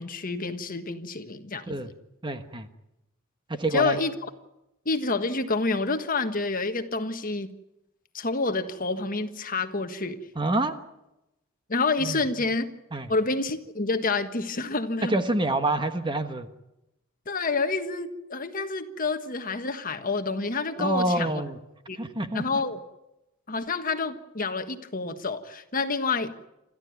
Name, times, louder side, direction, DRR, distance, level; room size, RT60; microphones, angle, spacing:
voice 1, 0.0-1.8 3.7-4.3 4.8-7.5 8.1-10.2 11.7-12.7 13.1-15.2 17.3-21.4 21.9-22.0 22.3-22.8 23.5-26.3, left 3 dB, 40° left, 8 dB, 1.5 m, -28 dB
voice 2, 2.2-2.7 3.5-4.0 10.4-10.7 12.0-12.2 12.9-13.1 15.1-16.5 20.8-21.6 22.0-22.4, right 2 dB, 20° right, 9 dB, 1.3 m, -27 dB
27.5 x 14.5 x 9.4 m, 0.91 s
head